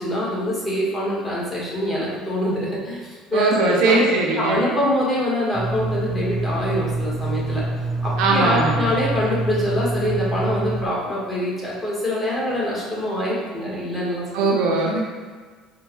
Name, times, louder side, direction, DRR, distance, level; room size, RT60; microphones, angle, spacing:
voice 1, 0.0-4.0 4.3-7.6 8.0-14.5, equal, 20° left, -6 dB, 1.4 m, -24 dB
voice 2, 3.3-4.6 8.2-8.9 14.3-15.0, right 3 dB, 75° right, -1 dB, 0.5 m, -20 dB
sound 1, 5.5-10.9, right 2 dB, 25° right, 0.6 m, -26 dB
4.4 x 2.1 x 3.0 m, 1.5 s
supercardioid pair, 85°, 0 cm